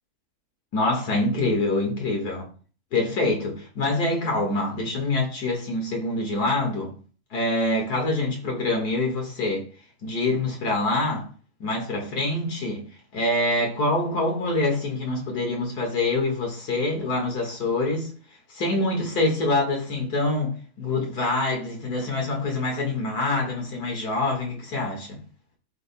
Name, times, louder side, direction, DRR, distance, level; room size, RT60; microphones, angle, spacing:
voice 1, 0.7-2.5 2.9-6.9 7.3-9.7 10.0-11.3 11.6-12.8 13.1-18.1 18.5-25.2, left 2 dB, 85° left, 2.4 m, -25 dB
13.0 x 4.4 x 2.2 m
omnidirectional pair, 1.6 m